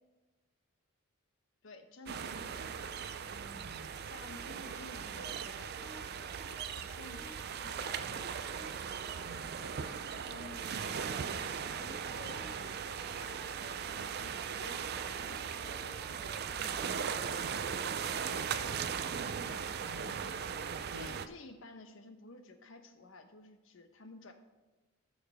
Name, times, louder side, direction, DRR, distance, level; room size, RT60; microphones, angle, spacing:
voice 1, 1.6-3.0 3.3-7.3 7.6-8.3 9.8-15.0 15.3-19.4 20.8-24.3, left 2 dB, 65° left, 7 dB, 0.9 m, -54 dB
sound 1, 2.1-21.3, right 7 dB, 50° right, 0.4 m, -38 dB
voice 2, 3.5-3.9 9.2-9.6 19.9-21.2, equal, 85° right, 6 dB, 1.1 m, -51 dB
sound 2, 4.7-20.6, left 1 dB, ahead, 3.1 m, -56 dB
14.5 x 6.5 x 3.5 m, 1.2 s
head